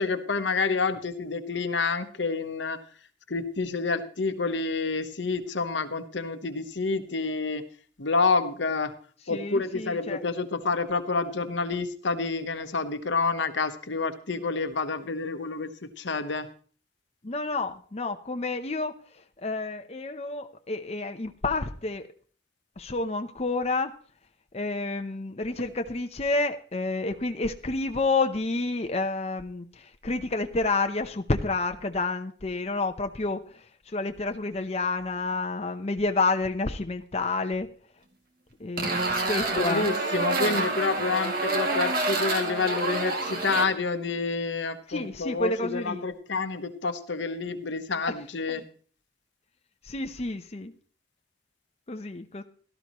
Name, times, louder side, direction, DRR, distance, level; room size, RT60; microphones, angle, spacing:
voice 1, 0.0-2.8 3.3-7.6 8.0-8.9 9.3-16.5 39.5-48.6, left 4 dB, 80° left, 9 dB, 1.0 m, -28 dB
voice 2, 9.3-10.2 17.2-18.9 19.4-22.1 22.8-23.9 24.5-33.6 33.9-37.7 38.6-39.0 39.3-39.9 40.2-40.7 41.1-41.2 44.9-46.0 48.5-48.6 49.9-50.7 51.9-52.4, left 3 dB, 35° left, 6 dB, 0.7 m, -29 dB
sound 1, 38.8-43.6, right 2 dB, 55° right, 2.2 m, -28 dB
16.5 x 13.0 x 3.0 m, 0.43 s
head